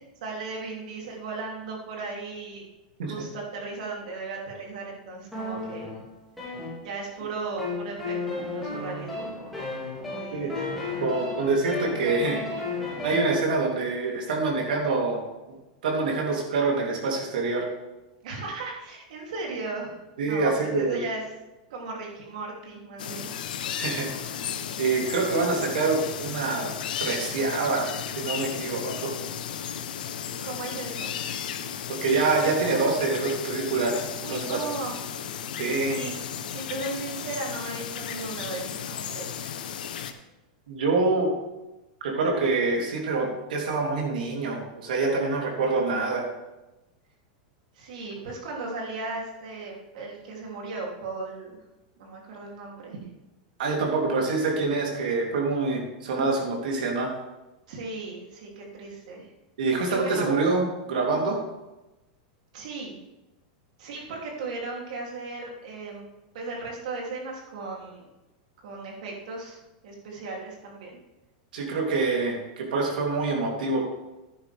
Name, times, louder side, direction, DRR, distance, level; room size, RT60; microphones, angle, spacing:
voice 1, 0.2-2.6 3.1-5.9 6.8-9.5 10.0-10.7 18.2-21.2 21.7-23.3 30.4-31.2 34.2-35.0 35.9-36.1 36.5-39.5 47.7-51.6 52.0-53.0 57.7-59.3 59.9-60.3 61.1-61.3 62.5-63.0 63.8-66.1 66.3-68.1 68.6-71.0, right 3 dB, 60° right, -1 dB, 3.2 m, -36 dB
sound 1, 5.3-7.2 7.6-13.4, left 3 dB, ahead, 2.5 m, -34 dB
voice 2, 11.0-12.4 13.0-15.2 15.5-15.6 15.8-17.6 20.2-21.0 23.7-24.1 24.8-26.7 27.0-29.1 31.9-34.6 35.6-36.0 40.7-41.3 42.0-46.3 53.6-57.2 59.6-61.4 71.5-73.9, right 3 dB, 80° right, -1 dB, 3.3 m, -26 dB
sound 2, 23.0-40.1, left 8 dB, 85° left, 1.0 m, -34 dB
11.5 x 10.0 x 3.6 m, 1.0 s
supercardioid pair, 180°, 5 cm